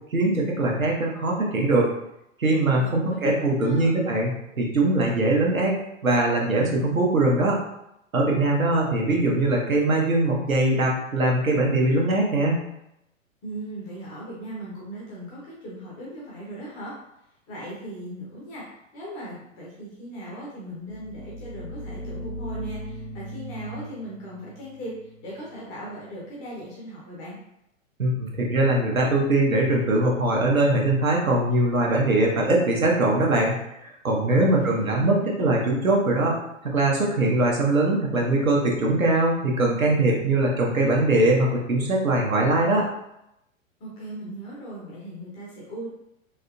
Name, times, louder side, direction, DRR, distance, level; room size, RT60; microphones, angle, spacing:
voice 1, 0.1-1.9 2.4-4.3 4.6-5.7 6.0-7.6 8.1-12.6 28.0-33.5 34.0-36.4 36.7-42.9, right 2 dB, 85° right, -1 dB, 0.9 m, -21 dB
voice 2, 2.7-3.3 3.6-4.0 13.4-16.9 17.5-18.6 18.9-27.4 34.4-35.3 43.8-45.9, right 1 dB, 15° left, -6 dB, 0.4 m, -38 dB
sound 1, 20.8-26.4, equal, 80° left, 1.0 m, -39 dB
3.5 x 2.7 x 2.2 m, 0.82 s
figure-of-eight pair, 110°, 40 cm